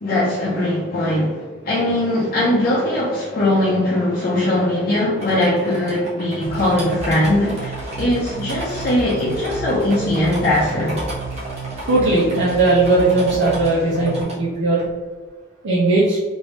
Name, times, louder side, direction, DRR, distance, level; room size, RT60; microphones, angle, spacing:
voice 1, 0.0-11.0, left 1 dB, 50° left, -7 dB, 0.7 m, -20 dB
sound 1, 5.2-14.4 14.8-14.9, right 1 dB, 35° right, 1.1 m, -34 dB
sound 2, 6.4-14.2, right 4 dB, 15° right, 0.5 m, -32 dB
voice 2, 11.9-14.9 15.6-16.2, right 2 dB, 70° right, -8 dB, 0.7 m, -17 dB
3.1 x 2.6 x 3.1 m, 1.4 s
head